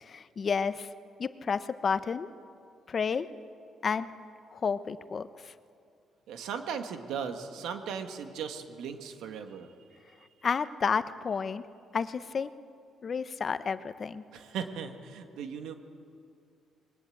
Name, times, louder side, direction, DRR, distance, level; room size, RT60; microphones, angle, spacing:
voice 1, 0.0-0.9 1.2-2.3 2.9-3.3 3.8-4.1 4.5-5.5 10.4-11.6 11.9-12.5 13.0-14.2, left 6 dB, 45° left, 13 dB, 0.9 m, -31 dB
voice 2, 6.3-9.7 14.3-15.7, right 7 dB, 85° right, 7 dB, 1.7 m, -37 dB
21.5 x 20.0 x 8.6 m, 2.4 s
cardioid pair, 90°, 0 cm